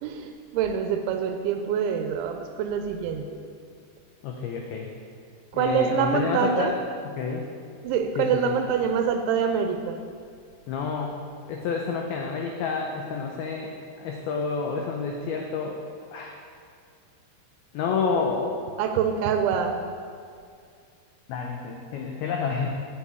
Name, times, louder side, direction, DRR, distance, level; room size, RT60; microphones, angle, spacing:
voice 1, 0.0-3.3 5.5-6.7 7.8-10.0 18.8-19.8, right 7 dB, 85° right, 5 dB, 2.9 m, -25 dB
voice 2, 4.2-4.9 5.5-6.7 7.0-7.5 8.2-8.5 10.7-11.2 11.5-13.7 14.0-15.8 16.1-16.3 17.7-18.6 21.3-22.7, left 5 dB, 85° left, 1 dB, 2.1 m, -29 dB
8.7 x 7.8 x 8.2 m, 2.3 s
omnidirectional pair, 5.4 m